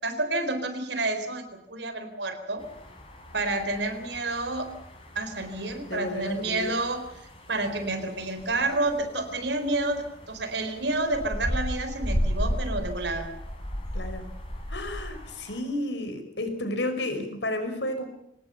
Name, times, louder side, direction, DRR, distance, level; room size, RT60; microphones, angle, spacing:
voice 1, 0.0-2.6 3.3-4.7 5.1-7.0 7.5-13.3, right 2 dB, 75° right, 9 dB, 4.2 m, -29 dB
sound 1, 2.6-15.6, equal, 30° left, 6.1 m, -35 dB
voice 2, 5.8-6.7 13.9-14.3 14.7-18.1, left 1 dB, 80° left, 7 dB, 5.4 m, -32 dB
24.5 x 19.5 x 7.0 m, 0.75 s
head